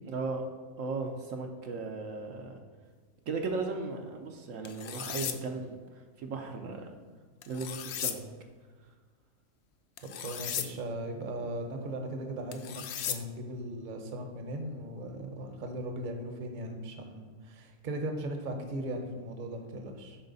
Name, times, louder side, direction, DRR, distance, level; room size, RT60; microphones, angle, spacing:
voice 1, 0.1-0.4 0.8-2.6 3.3-6.9 7.5-8.2, right 3 dB, 70° right, 3 dB, 1.0 m, -36 dB
sound 1, 4.6-5.4 7.4-8.1 10.0-10.7 12.5-13.2, left 9 dB, 65° left, 0.7 m, -36 dB
voice 2, 10.0-20.2, right 1 dB, 40° right, 4 dB, 0.9 m, -38 dB
10.5 x 4.4 x 4.0 m, 1.5 s
omnidirectional pair, 1.5 m